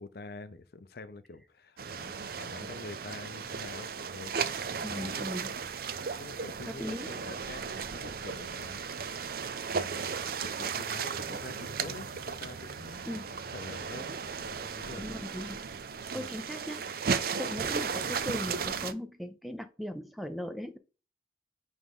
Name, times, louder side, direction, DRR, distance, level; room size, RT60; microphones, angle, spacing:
voice 1, 0.0-5.3 6.2-8.8 9.7-10.1 10.4-13.1 13.5-15.0 16.1-16.3 17.1-17.2, left 3 dB, 60° left, 0.6 m, -46 dB
sound 1, 1.8-18.9, right 6 dB, 55° right, 0.5 m, -35 dB
voice 2, 4.8-5.5 6.7-7.2 13.1-13.4 14.9-15.6 16.1-16.9 17.4-20.8, equal, ahead, 0.5 m, -38 dB
9.2 x 3.5 x 3.6 m
head